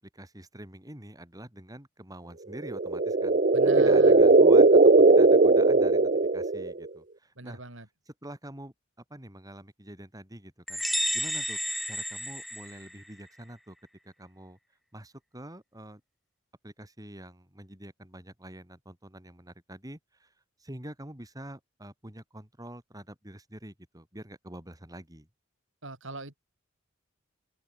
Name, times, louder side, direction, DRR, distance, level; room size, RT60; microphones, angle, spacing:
voice 1, 0.1-3.4 3.8-4.8 5.1-7.6 8.1-8.7 9.1-10.8 11.1-11.6 11.8-13.8 14.0-14.6 14.9-16.0 16.6-20.3 20.6-25.3, right 1 dB, 20° right, 4.4 m, -45 dB
sound 1, 2.6-6.9, right 3 dB, 40° right, 1.1 m, -19 dB
voice 2, 3.5-4.2 7.4-7.9 25.8-26.4, right 2 dB, 70° right, 4.8 m, -39 dB
sound 2, 10.7-13.3, equal, ahead, 3.9 m, -31 dB
open air
head